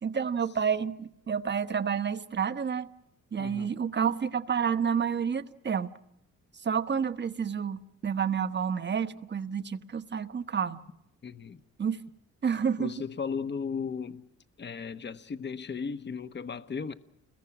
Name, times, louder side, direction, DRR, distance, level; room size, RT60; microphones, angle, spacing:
voice 1, 0.0-2.9 3.3-5.9 6.6-10.8 11.8-12.0 12.4-12.9, right 7 dB, 35° right, 1.2 m, -29 dB
voice 2, 3.4-3.8 11.2-11.6 12.8-14.3 14.6-16.9, left 6 dB, 35° left, 1.2 m, -36 dB
29.5 x 22.0 x 6.2 m
cardioid pair, 90°, 30 cm